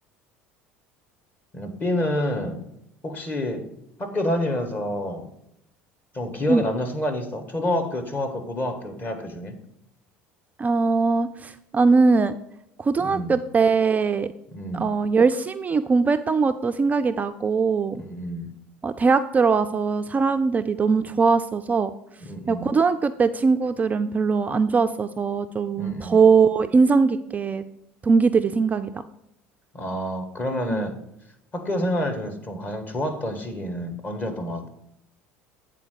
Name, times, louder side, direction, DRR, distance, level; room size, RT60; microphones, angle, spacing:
voice 1, 1.5-2.7 3.0-3.7 4.0-5.3 6.1-9.6 13.0-13.3 14.5-14.9 17.9-18.5 22.2-22.7 25.8-26.2 29.7-31.0 31.5-34.7, left 1 dB, 30° left, 4 dB, 1.6 m, -28 dB
voice 2, 10.6-12.3 12.8-14.3 14.7-18.0 18.8-21.9 22.5-27.6 28.0-29.0 30.7-30.9, right 4 dB, 25° right, 9 dB, 0.4 m, -21 dB
8.4 x 3.9 x 6.5 m, 0.79 s
figure-of-eight pair, 65°, 6 cm